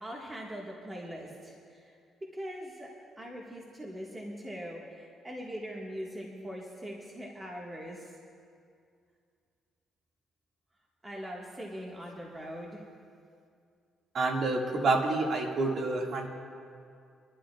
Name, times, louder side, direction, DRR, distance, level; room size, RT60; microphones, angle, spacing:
voice 1, 0.0-1.9 2.3-2.9 3.2-8.1 11.0-12.8, equal, 20° right, -2 dB, 1.6 m, -41 dB
voice 2, 14.1-16.3, right 3 dB, 60° right, 0 dB, 1.9 m, -28 dB
27.5 x 11.5 x 2.4 m, 2.3 s
cardioid pair, 90°, 0 cm